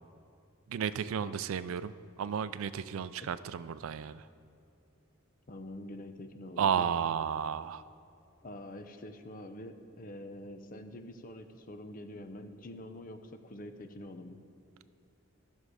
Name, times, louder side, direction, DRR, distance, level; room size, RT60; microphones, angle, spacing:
voice 1, 0.7-1.9 2.2-4.2 6.6-7.8, right 7 dB, 75° right, 15 dB, 0.3 m, -32 dB
voice 2, 5.5-6.9 8.4-14.4, left 1 dB, 40° left, 8 dB, 0.6 m, -46 dB
13.5 x 6.3 x 4.9 m, 2.5 s
head